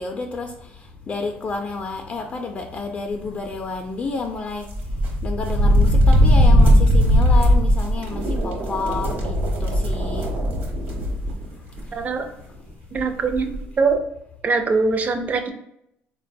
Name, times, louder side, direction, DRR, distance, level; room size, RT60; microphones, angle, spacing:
voice 1, 0.0-4.7 5.2-10.3 10.7-10.9 11.7-12.0, left 3 dB, 35° left, 3 dB, 0.3 m, -30 dB
sound 1, 4.7-11.4 11.8-11.9 13.0-13.1 13.3-13.6, equal, 55° right, 0.8 m, -18 dB
sound 2, 7.8-11.9 12.4-12.7, right 3 dB, 90° right, 0.5 m, -33 dB
voice 2, 11.9-12.3 12.9-14.0 14.4-15.5, right 4 dB, 40° right, 7 dB, 0.4 m, -22 dB
3.9 x 2.2 x 2.6 m, 0.77 s
cardioid pair, 110°, 4 cm